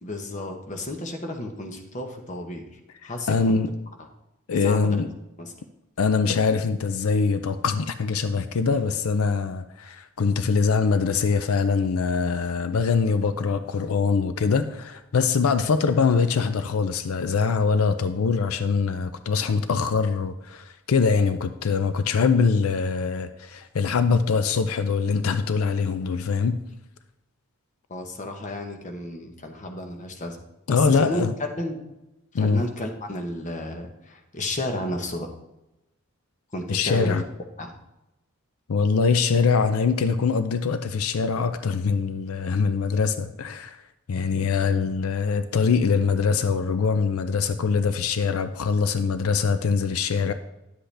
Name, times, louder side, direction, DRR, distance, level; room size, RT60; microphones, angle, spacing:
voice 1, 0.0-2.7 3.0-3.6 4.5-5.0 5.4-5.5 27.9-30.4 30.7-31.2 31.6-31.8 32.3-35.3 36.5-37.2 37.6-37.7, left 1 dB, 35° left, 4 dB, 1.0 m, -32 dB
voice 2, 3.0-3.7 4.5-5.1 6.0-26.6 30.7-31.3 32.3-32.6 36.7-37.2 38.7-43.8 44.1-50.3, left 5 dB, 85° left, 11 dB, 0.5 m, -23 dB
10.0 x 7.8 x 3.3 m, 0.92 s
head